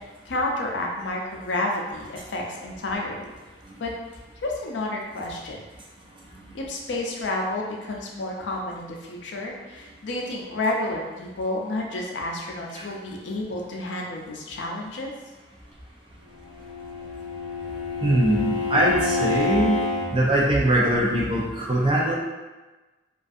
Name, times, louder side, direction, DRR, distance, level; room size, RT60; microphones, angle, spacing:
voice 1, 0.3-3.3 3.8-3.9 4.4-5.6 6.5-15.1, left 2 dB, 75° left, 0 dB, 0.4 m, -30 dB
Bowed string instrument, 16.4-20.1, left 3 dB, 70° right, 1.1 m, -28 dB
voice 2, 18.0-19.8 20.1-22.1, right 1 dB, 30° right, -3 dB, 0.4 m, -22 dB
2.4 x 2.3 x 2.5 m, 1.2 s
head